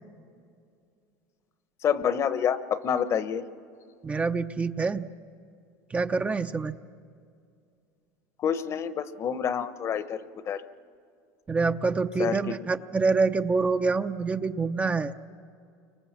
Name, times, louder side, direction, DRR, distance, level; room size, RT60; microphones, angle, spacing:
voice 1, 1.8-3.4 8.4-10.6 12.2-12.4, left 8 dB, 40° left, 13 dB, 1.0 m, -28 dB
voice 2, 4.0-5.1 5.9-6.8 11.5-15.1, right 4 dB, 15° right, 8 dB, 0.6 m, -26 dB
29.5 x 24.5 x 7.5 m, 2.4 s
supercardioid pair, 120°, 8 cm